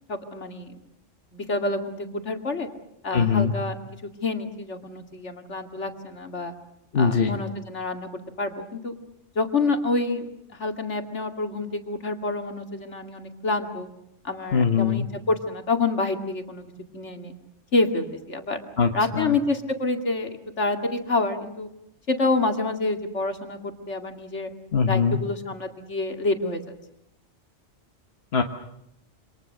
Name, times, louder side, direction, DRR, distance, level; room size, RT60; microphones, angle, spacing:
voice 1, 0.1-0.8 1.3-2.7 3.0-3.7 4.2-6.5 6.9-8.9 9.4-13.9 14.2-17.3 17.7-18.6 18.9-20.3 20.6-21.7 22.1-24.5 24.9-26.6, left 3 dB, 85° left, 5 dB, 2.7 m, -27 dB
voice 2, 3.1-3.5 6.9-7.3 14.5-15.1 18.8-19.3 24.7-25.2 28.3-28.4, left 6 dB, 65° left, 4 dB, 1.6 m, -22 dB
28.0 x 26.0 x 6.5 m, 0.81 s
omnidirectional pair, 1.2 m